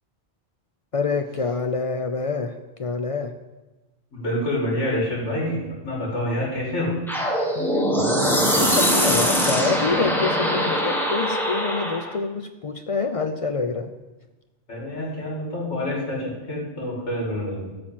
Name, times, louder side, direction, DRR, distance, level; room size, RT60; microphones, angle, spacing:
voice 1, 0.9-3.3 7.5-13.9, left 4 dB, 55° left, 8 dB, 0.4 m, -27 dB
voice 2, 4.1-7.0 14.7-17.7, left 1 dB, 75° left, -4 dB, 2.7 m, -27 dB
sound 1, 7.1-12.1, equal, ahead, 1.2 m, -22 dB
13.0 x 4.3 x 7.5 m, 1.1 s
omnidirectional pair, 1.2 m